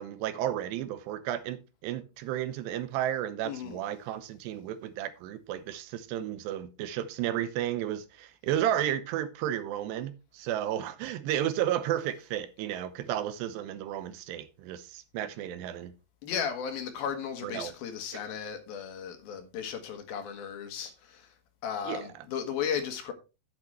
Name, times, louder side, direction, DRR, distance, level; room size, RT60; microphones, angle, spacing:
voice 1, 0.0-15.9 17.4-17.7 21.9-22.1, right 11 dB, 85° right, 2.9 m, -33 dB
voice 2, 3.4-3.8 16.2-21.3 21.6-23.1, left 7 dB, 70° left, 3.0 m, -35 dB
10.5 x 8.7 x 3.2 m
omnidirectional pair, 4.9 m